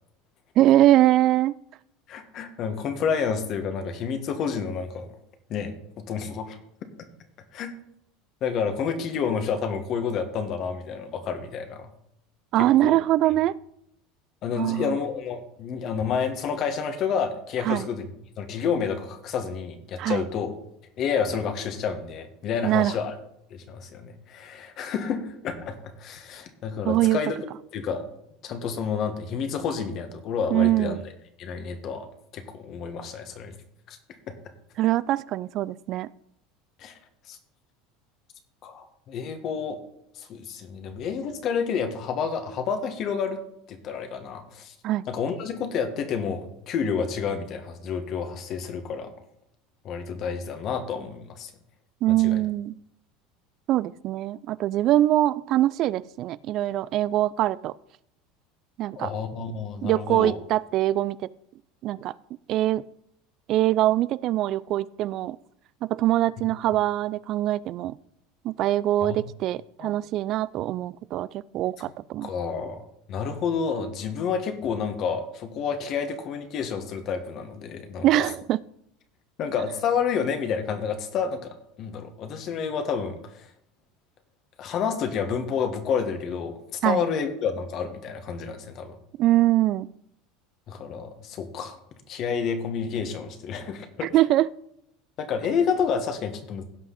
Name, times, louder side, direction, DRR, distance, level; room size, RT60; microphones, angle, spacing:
voice 1, 0.6-1.5 12.5-13.5 14.6-15.0 17.6-17.9 20.0-20.3 22.6-22.9 26.9-27.2 30.5-31.0 34.8-36.1 44.8-45.0 52.0-52.7 53.7-57.7 58.8-59.1 59.8-61.3 61.8-62.1 62.5-62.8 63.5-65.4 65.9-68.0 68.4-71.3 71.5-72.3 78.0-78.6 86.8-87.0 89.2-89.9 94.0-94.5, right 14 dB, 55° right, 19 dB, 0.3 m, -23 dB
voice 2, 2.1-5.1 5.5-6.6 7.5-7.7 8.4-11.9 12.8-13.0 14.4-18.1 18.4-20.5 21.0-23.2 23.5-27.5 27.7-28.0 28.4-31.0 31.4-32.1 32.3-33.6 33.9-34.0 36.8-37.0 37.3-37.4 38.6-39.8 40.2-43.4 43.7-44.7 45.1-49.1 49.8-51.5 52.2-52.4 59.0-60.4 69.0-69.2 69.8-69.9 72.2-72.8 73.1-78.3 79.4-83.5 84.6-89.0 90.7-91.8 92.1-94.1 95.2-96.6, left 6 dB, 50° left, 6 dB, 1.8 m, -29 dB
16.0 x 5.8 x 4.2 m, 0.74 s
hypercardioid pair, 90°, 0 cm